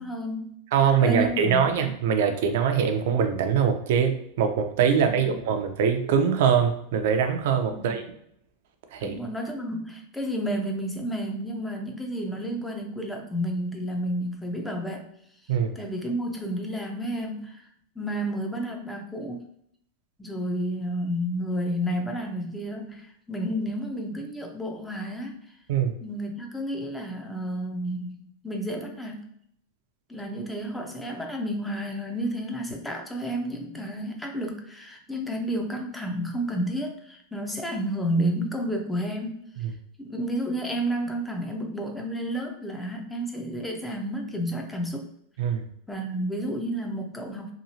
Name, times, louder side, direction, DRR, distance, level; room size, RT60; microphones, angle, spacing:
voice 1, 0.0-0.5 1.0-1.8 7.7-7.9 9.0-15.1 15.8-17.6 18.0-19.5 20.2-25.4 26.0-29.2 30.1-39.4 40.0-45.1 45.9-47.5, equal, 5° left, 2 dB, 0.5 m, -31 dB
voice 2, 0.7-8.0 8.9-9.2 15.5-15.7 25.7-25.9 39.6-39.7 45.4-45.6, right 7 dB, 70° right, 6 dB, 0.5 m, -23 dB
2.9 x 2.3 x 2.7 m, 0.71 s
supercardioid pair, 130°, 0 cm